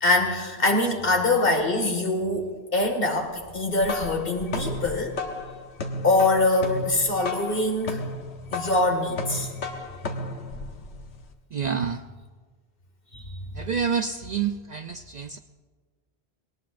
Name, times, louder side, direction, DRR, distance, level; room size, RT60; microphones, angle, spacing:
voice 1, 0.0-5.2 6.0-8.0 8.5-9.5 13.1-13.3, left 2 dB, 60° left, 3 dB, 2.2 m, -24 dB
sound 1, 3.6-11.3, left 2 dB, 85° left, 1.2 m, -34 dB
voice 2, 11.5-12.0 13.6-15.4, right 6 dB, 55° right, 8 dB, 0.5 m, -28 dB
19.5 x 18.5 x 2.6 m, 1.4 s
omnidirectional pair, 1.1 m